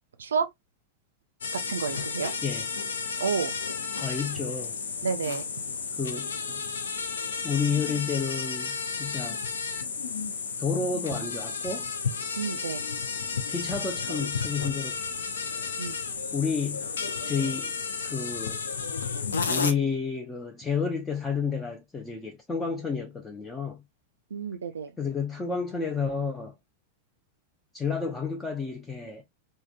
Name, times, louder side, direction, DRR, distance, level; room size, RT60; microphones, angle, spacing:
sound 1, 1.4-19.7, left 5 dB, 70° left, 0.5 m, -32 dB
voice 1, 1.7-2.3 3.2-3.5 5.0-5.4 12.4-12.8 15.8-16.0 24.3-24.9, right 6 dB, 70° right, 0.5 m, -30 dB
voice 2, 4.0-4.7 6.0-6.6 7.4-9.4 10.6-11.9 13.5-15.0 16.3-16.9 17.2-17.7 18.0-18.6 19.5-23.8 25.0-26.5 27.7-29.2, left 5 dB, 15° left, 0.5 m, -30 dB
3.4 x 2.2 x 2.3 m
figure-of-eight pair, 90°, 0 cm